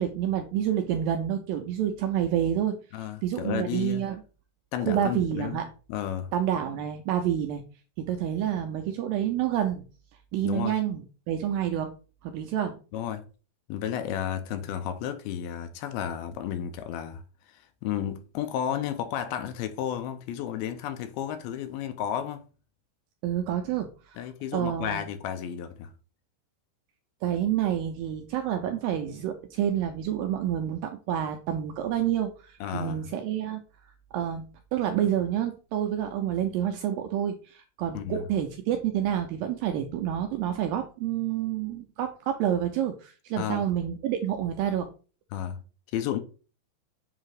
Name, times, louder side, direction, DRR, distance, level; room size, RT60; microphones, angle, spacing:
voice 1, 0.0-2.8 3.2-4.2 4.9-5.7 6.3-7.6 8.0-9.9 10.3-11.9 12.2-12.8 23.2-24.2 24.5-25.0 27.2-33.6 34.1-44.9, right 10 dB, 85° right, 2.1 m, -28 dB
voice 2, 2.9-4.0 4.7-5.6 5.9-6.3 10.4-10.8 12.9-13.3 13.7-22.5 24.2-25.9 32.6-33.1 37.9-38.3 43.4-43.7 45.3-45.6 45.9-46.2, left 10 dB, 80° left, 2.4 m, -32 dB
7.5 x 2.8 x 4.8 m
omnidirectional pair, 4.6 m